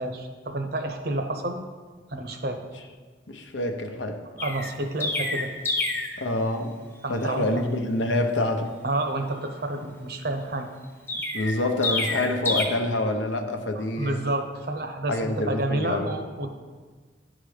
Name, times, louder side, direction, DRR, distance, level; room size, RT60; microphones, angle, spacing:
voice 1, 0.0-1.6 2.1-2.6 4.4-5.5 7.0-7.6 8.8-10.7 12.5-12.6 13.8-16.5, right 2 dB, 60° right, 6 dB, 0.8 m, -29 dB
voice 2, 3.3-4.2 6.2-6.7 7.1-8.7 11.1-14.2 15.1-16.1, left 1 dB, 85° left, 5 dB, 0.8 m, -27 dB
Chirp tweet, 4.4-6.2 11.1-12.6, left 2 dB, 15° left, 0.7 m, -28 dB
11.0 x 4.0 x 4.9 m, 1.5 s
head